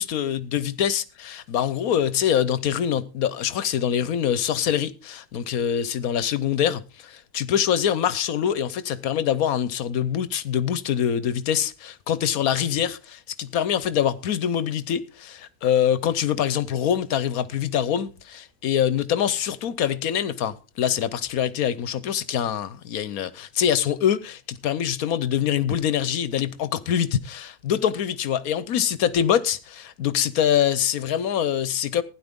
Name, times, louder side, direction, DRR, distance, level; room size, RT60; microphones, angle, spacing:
voice 1, 0.0-32.0, left 9 dB, 75° left, 1.3 m, -24 dB
16.0 x 10.5 x 3.6 m
omnidirectional pair, 1.5 m